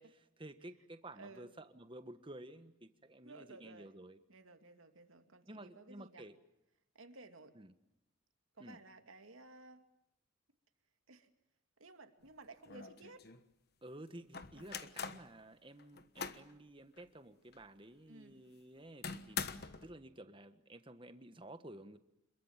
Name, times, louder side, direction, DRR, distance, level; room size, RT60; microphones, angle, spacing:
voice 1, 0.0-4.2 5.5-6.4 7.5-7.7 8.6-8.8 13.8-22.0, right 1 dB, 25° right, 10 dB, 1.4 m, -53 dB
voice 2, 1.2-1.5 3.2-3.9 4.3-6.2 6.9-7.6 8.5-9.9 11.1-11.3 11.8-13.2 14.5-14.8 18.1-18.4, right 2 dB, 85° right, 6 dB, 2.6 m, -56 dB
sound 1, 12.2-12.3 12.7-13.4 14.3-15.3 15.8-16.5 17.0-17.1 17.5-17.6 19.0-19.9, left 6 dB, 50° left, 1.3 m, -43 dB
27.0 x 22.0 x 7.4 m, 0.85 s
head